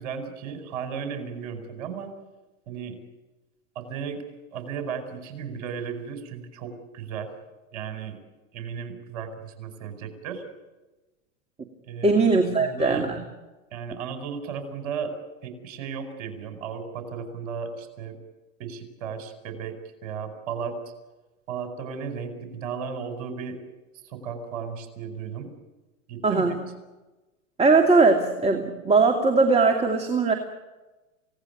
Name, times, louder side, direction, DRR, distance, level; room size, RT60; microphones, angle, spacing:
voice 1, 0.0-2.1 2.7-3.0 3.7-4.2 4.5-7.3 7.7-8.2 8.5-10.4 11.9-12.3 12.6-13.1 13.7-15.1 15.4-18.2 18.6-19.7 20.0-20.8 21.5-23.6 24.0-25.5 26.1-26.6, right 6 dB, 60° right, 7 dB, 5.1 m, -35 dB
voice 2, 12.0-13.2 26.2-26.6 27.6-30.3, right 3 dB, 15° right, 5 dB, 2.7 m, -20 dB
28.5 x 18.0 x 9.4 m, 1.1 s
hypercardioid pair, 105°, 40 cm